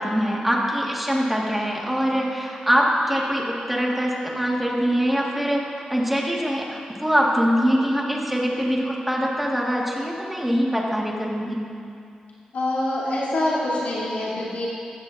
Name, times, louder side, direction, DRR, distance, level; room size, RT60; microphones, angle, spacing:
voice 1, 0.0-5.6 5.9-11.6, equal, 5° right, -3 dB, 1.7 m, -23 dB
voice 2, 12.5-14.7, left 1 dB, 85° left, -8 dB, 3.1 m, -25 dB
15.5 x 15.0 x 2.6 m, 2.5 s
wide cardioid pair, 135°, 3 cm